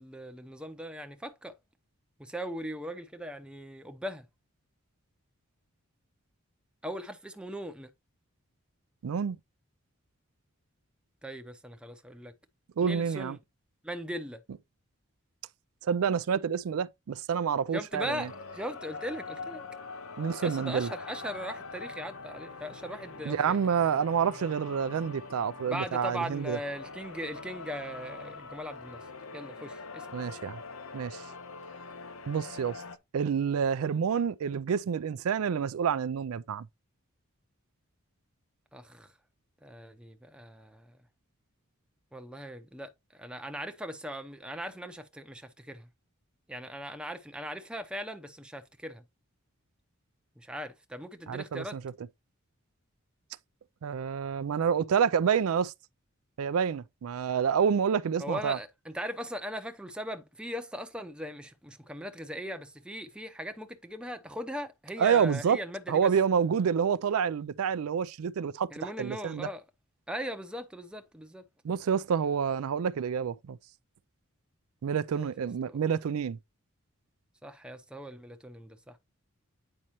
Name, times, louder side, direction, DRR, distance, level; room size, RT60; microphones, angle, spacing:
voice 1, 0.0-1.5 2.2-4.2 6.8-7.9 11.2-12.3 12.8-13.4 13.8-14.4 17.7-19.6 20.4-23.6 25.7-29.0 29.3-30.1 38.7-39.1 39.6-40.9 42.1-45.9 46.5-49.0 50.4-51.8 58.2-66.1 68.7-69.6 70.1-71.4 75.1-75.3 75.7-75.8 77.4-79.0, equal, 5° right, 0.7 m, -39 dB
voice 2, 9.0-9.4 12.8-13.4 15.9-18.3 20.2-20.9 23.3-26.6 30.1-30.6 30.9-31.2 32.3-32.8 33.1-36.7 51.3-51.8 53.8-55.7 56.4-58.6 65.0-65.6 65.9-69.5 71.6-73.6 74.8-76.4, right 7 dB, 75° right, 0.4 m, -28 dB
sound 1, 17.9-33.0, left 4 dB, 70° left, 0.8 m, -43 dB
8.7 x 5.4 x 3.0 m
head